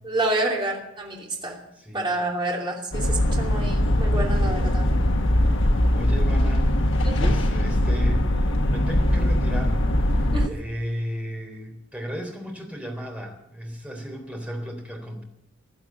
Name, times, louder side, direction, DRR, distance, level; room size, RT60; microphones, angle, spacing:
voice 1, 0.0-1.6 1.9-4.9 7.0-7.3 10.3-10.5, right 2 dB, 25° right, -2 dB, 2.9 m, -28 dB
voice 2, 1.8-2.1 5.9-6.7 7.2-8.3 8.7-9.8 10.4-15.2, equal, 5° right, 2 dB, 3.7 m, -34 dB
sound 1, 2.9-10.5, left 1 dB, 60° left, 1.3 m, -21 dB
16.5 x 11.0 x 7.8 m, 0.82 s
head